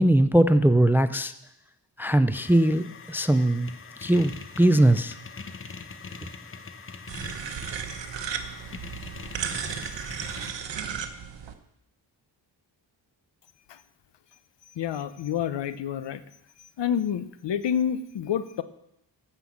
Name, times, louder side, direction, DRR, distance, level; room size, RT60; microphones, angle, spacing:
voice 1, 0.0-1.3 2.0-3.7 4.0-5.1, right 1 dB, 5° right, 12 dB, 0.4 m, -20 dB
sound 1, 2.3-10.5, left 4 dB, 30° left, 0.9 m, -42 dB
sound 2, 7.1-11.5, right 7 dB, 80° right, 1.1 m, -34 dB
voice 2, 14.8-16.2 16.8-18.6, left 9 dB, 75° left, 14 dB, 0.8 m, -28 dB
14.0 x 5.6 x 7.2 m, 0.80 s
wide cardioid pair, 125°, 43 cm